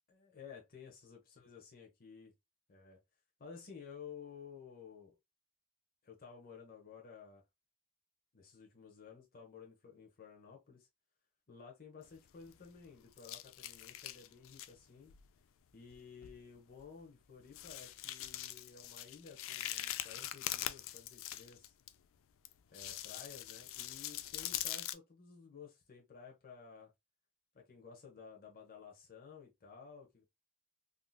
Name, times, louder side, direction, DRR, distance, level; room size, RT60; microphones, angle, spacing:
voice 1, 0.1-2.3 2.7-3.0 3.4-5.2 6.0-7.4 8.3-10.9 11.5-15.1 15.7-21.7 22.7-26.9 27.5-30.2, left 6 dB, 40° left, 0.7 m, -54 dB
sound 1, 12.1-12.8 13.2-14.7 15.1-15.3 15.9-16.0 16.2-16.4 16.8-16.9 17.5-21.9 22.4-24.9, left 13 dB, 60° left, 0.3 m, -43 dB
3.6 x 2.5 x 2.2 m
head